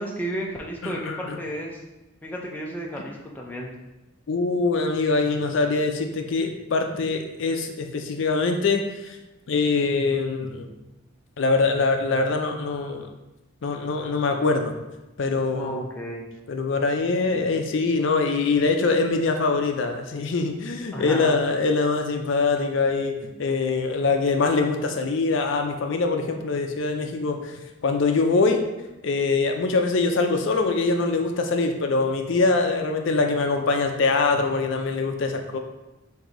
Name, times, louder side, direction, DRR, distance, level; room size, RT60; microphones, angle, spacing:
voice 1, 0.0-1.8 2.2-3.7 15.5-16.2 20.9-21.3, equal, 10° left, -2 dB, 0.5 m, -32 dB
voice 2, 0.8-1.4 4.3-9.2 9.5-10.7 11.4-13.1 13.6-14.7 15.2-15.8 16.5-27.5 27.8-28.6 29.0-35.6, left 3 dB, 65° left, 4 dB, 0.4 m, -23 dB
4.6 x 2.6 x 3.7 m, 1.0 s
head